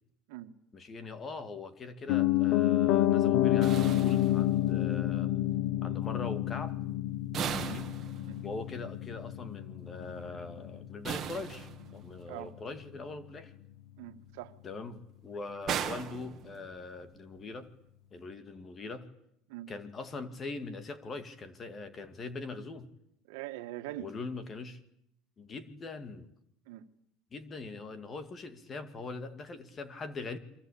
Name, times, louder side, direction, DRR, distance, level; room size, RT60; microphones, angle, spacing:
voice 1, 0.7-5.3 5.8-6.8 7.4-7.9 8.4-13.5 14.6-17.7 18.1-19.1 19.7-22.9 24.0-24.8 25.4-26.3 27.3-30.4, left 3 dB, 25° left, 2.1 m, -42 dB
Piano, 2.1-12.1 12.4-12.5, left 13 dB, 60° left, 1.3 m, -29 dB
sound 1, 3.6-4.9 7.3-8.7 11.0-12.2 15.7-17.0, right 9 dB, 30° right, 2.5 m, -38 dB
voice 2, 14.0-14.6 19.5-19.7 23.3-24.1 26.7-26.8, right 15 dB, 90° right, 1.8 m, -42 dB
29.0 x 23.5 x 8.6 m
cardioid pair, 160°, 0 cm